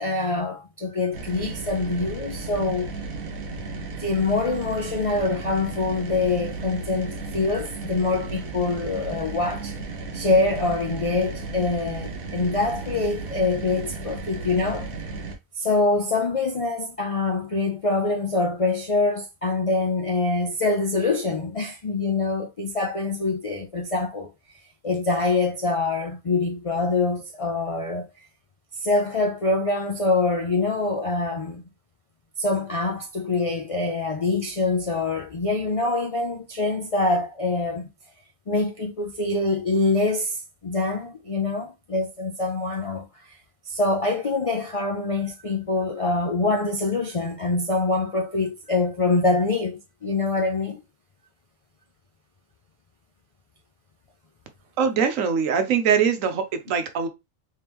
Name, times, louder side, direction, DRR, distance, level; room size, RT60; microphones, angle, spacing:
voice 1, 0.0-2.9 3.8-9.7 10.1-14.9 15.5-24.3 24.8-28.1 28.8-31.6 32.4-37.9 38.5-43.1 43.7-50.8, left 3 dB, 60° left, 0.3 m, -25 dB
sound 1, 1.1-15.4, right 3 dB, 90° right, 1.3 m, -34 dB
voice 2, 54.8-57.1, right 7 dB, 75° right, 1.1 m, -22 dB
3.5 x 3.4 x 2.9 m
omnidirectional pair, 1.4 m